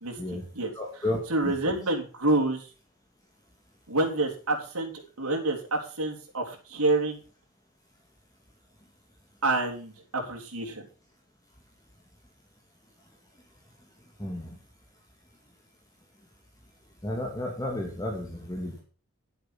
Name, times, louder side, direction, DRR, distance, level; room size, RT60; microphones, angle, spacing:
voice 1, 0.0-0.7 1.3-2.7 3.9-4.9 5.2-7.2 9.4-10.9, right 2 dB, 80° right, 1 dB, 3.4 m, -28 dB
voice 2, 0.8-1.8 14.2-14.5 17.0-18.8, left 1 dB, 15° left, 1 dB, 2.1 m, -33 dB
11.5 x 8.2 x 5.9 m, 0.37 s
head